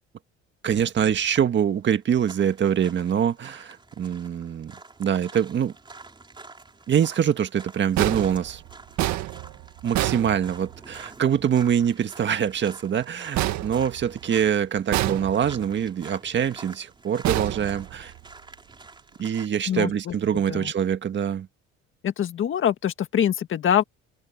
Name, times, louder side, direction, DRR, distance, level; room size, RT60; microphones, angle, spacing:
voice 1, 0.6-4.7 5.0-5.7 6.9-8.6 9.8-18.1 19.2-21.5, right 8 dB, 40° right, 1.7 m, -24 dB
sound 1, 0.8-19.5, right 3 dB, 15° right, 4.3 m, -48 dB
sound 2, 8.0-11.0 13.3-14.4 14.9-15.7 17.2-18.3, right 15 dB, 70° right, 1.7 m, -28 dB
voice 2, 19.7-20.1 20.5-20.7 22.0-23.8, left 9 dB, 45° left, 1.7 m, -24 dB
open air
cardioid pair, 130°, 29 cm